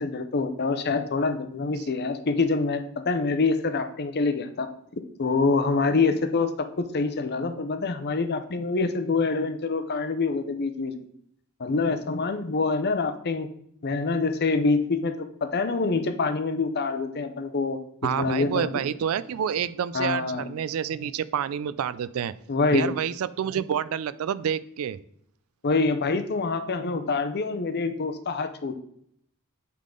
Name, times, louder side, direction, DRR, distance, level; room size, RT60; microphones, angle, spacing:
voice 1, 0.0-11.1 11.6-13.5 13.8-17.8 18.2-18.7 19.9-20.5 22.5-22.9 25.6-28.7, left 4 dB, 50° left, 9 dB, 0.6 m, -26 dB
voice 2, 18.0-22.3 22.7-25.0, right 8 dB, 70° right, 16 dB, 0.3 m, -28 dB
8.6 x 3.8 x 3.7 m, 0.69 s
head